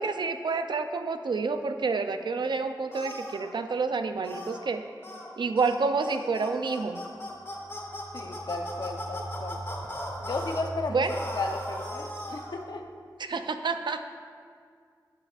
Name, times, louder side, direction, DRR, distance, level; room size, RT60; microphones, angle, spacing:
voice 1, 0.0-4.8 5.4-7.0 10.9-11.1 13.2-14.1, right 4 dB, 75° right, 8 dB, 0.5 m, -29 dB
sound 1, 2.9-3.5 4.2-4.6 5.0-5.3 5.6-5.8 6.0-10.6 11.1-12.6, left 1 dB, 35° left, 1.8 m, -38 dB
sound 2, 7.2-12.8, right 2 dB, 40° right, 2.2 m, -43 dB
voice 2, 8.1-9.6 10.2-11.0 11.3-12.8 13.3-13.4, left 3 dB, 70° left, 3 dB, 0.8 m, -34 dB
17.0 x 8.1 x 2.5 m, 2.1 s
wide cardioid pair, 95°, 8 cm